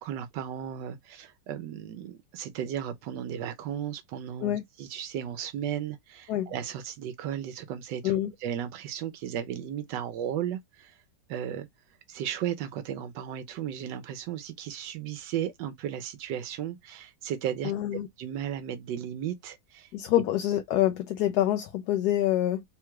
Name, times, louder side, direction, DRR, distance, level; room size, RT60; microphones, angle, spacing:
voice 1, 0.0-11.0 11.3-11.7 12.1-17.7 18.2-19.9, right 10 dB, 85° right, 1.3 m, -35 dB
voice 2, 17.6-18.1 19.9-22.6, left 13 dB, 70° left, 1.1 m, -26 dB
3.7 x 2.3 x 4.5 m
omnidirectional pair, 1.9 m